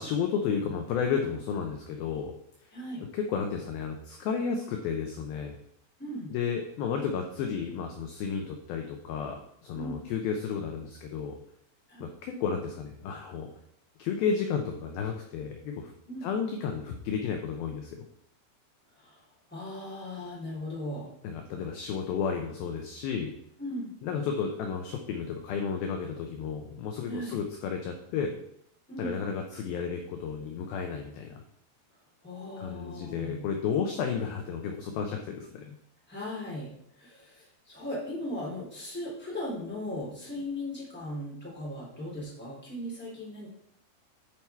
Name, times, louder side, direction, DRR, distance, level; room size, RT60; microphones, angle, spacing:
voice 1, 0.0-2.3 3.1-5.6 6.3-11.4 12.0-13.5 14.0-15.9 16.2-18.0 21.2-23.3 24.0-28.3 29.0-31.4 32.6-35.8, left 6 dB, 75° left, 3 dB, 2.3 m, -32 dB
voice 2, 2.7-3.0 6.0-6.3 9.7-10.0 11.9-12.0 16.1-16.3 19.0-19.2 19.5-21.1 23.6-23.9 27.1-27.4 28.9-29.3 32.2-33.4 36.1-36.7 37.0-43.5, left 1 dB, 5° left, -6 dB, 2.6 m, -37 dB
10.5 x 4.7 x 4.5 m, 0.72 s
omnidirectional pair, 5.0 m